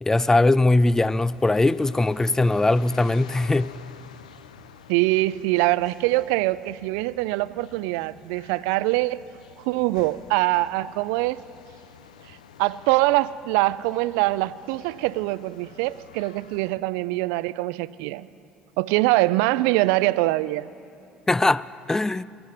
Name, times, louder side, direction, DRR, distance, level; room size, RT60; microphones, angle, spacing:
voice 1, 0.0-3.7 21.3-22.2, left 2 dB, 15° left, 0.3 m, -20 dB
sound 1, 1.0-16.7, left 7 dB, 90° left, 0.5 m, -49 dB
voice 2, 4.9-9.2 9.6-11.4 12.6-18.3 18.8-20.7, right 19 dB, 70° right, 0.3 m, -23 dB
12.0 x 10.0 x 9.6 m
hypercardioid pair, 65°, 4 cm